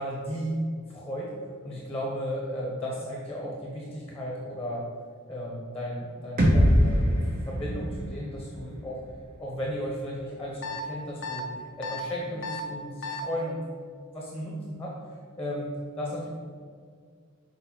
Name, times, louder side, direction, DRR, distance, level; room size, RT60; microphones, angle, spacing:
voice 1, 0.0-4.9 5.3-7.2 7.5-9.0 9.4-13.6 14.1-16.3, equal, 10° left, -3 dB, 1.0 m, -34 dB
sound 1, 6.4-10.3, equal, 40° right, 1.1 m, -25 dB
sound 2, 10.6-10.8 11.2-11.4 11.8-12.0 12.4-12.6 13.0-13.2, left 5 dB, 60° left, 0.6 m, -34 dB
6.8 x 4.4 x 4.4 m, 2.1 s
head